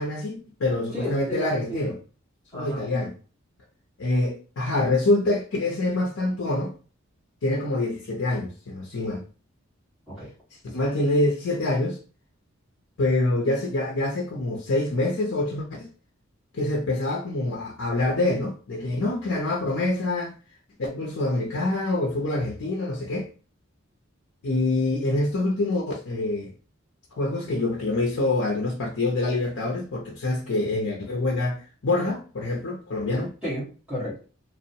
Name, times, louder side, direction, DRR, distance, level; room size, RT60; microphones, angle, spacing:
voice 1, 0.0-1.9 2.5-3.1 4.0-6.7 7.4-9.2 10.7-12.0 13.0-15.9 16.5-20.3 20.8-23.3 24.4-26.5 27.1-33.3, left 2 dB, 80° left, 0.6 m, -26 dB
voice 2, 0.9-1.9 2.5-2.8 10.1-10.3 33.4-34.2, equal, 5° right, 1.2 m, -32 dB
2.9 x 2.1 x 2.7 m
head